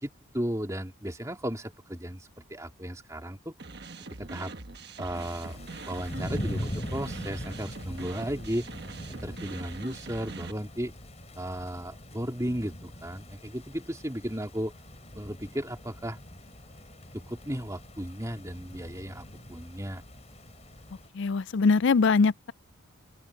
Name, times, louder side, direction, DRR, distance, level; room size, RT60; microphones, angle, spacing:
voice 1, 0.0-3.6 4.2-4.5 5.0-5.6 5.9-8.7 9.1-10.9 11.4-14.7 15.1-16.2 17.1-20.0, equal, 15° right, 2.9 m, -35 dB
sound 1, 3.6-10.5, right 3 dB, 50° right, 1.3 m, -42 dB
sound 2, 5.1-21.1, equal, 30° left, 4.9 m, -42 dB
voice 2, 21.1-22.5, left 4 dB, 55° left, 0.4 m, -22 dB
open air
head